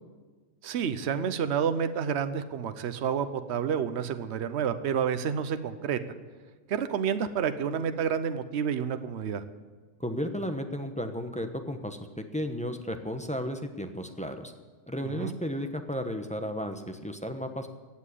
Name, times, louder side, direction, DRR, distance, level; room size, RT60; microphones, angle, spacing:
voice 1, 0.6-6.2 6.7-9.4 15.2-15.3, right 7 dB, 60° right, 11 dB, 1.0 m, -29 dB
voice 2, 10.0-14.5 14.9-17.7, equal, 5° left, 6 dB, 0.8 m, -34 dB
16.5 x 7.5 x 8.4 m, 1.4 s
omnidirectional pair, 1.4 m